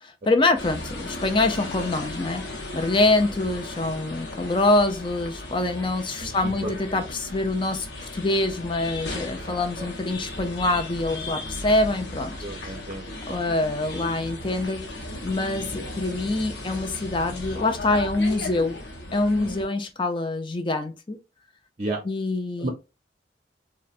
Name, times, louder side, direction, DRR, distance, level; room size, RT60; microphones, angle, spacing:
voice 1, 0.0-2.4 2.7-7.9 8.1-12.4 12.6-12.7 13.3-14.8 15.2-18.8 19.1-21.2 22.0-22.7, left 2 dB, 25° left, 0.5 m, -25 dB
sound 1, 0.6-19.6, left 1 dB, 65° left, 0.9 m, -36 dB
voice 2, 6.2-6.7 9.4-9.9 12.4-13.4 19.4-19.5 21.8-22.0 22.6-22.7, right 2 dB, 35° right, 0.6 m, -33 dB
3.8 x 2.2 x 2.4 m
head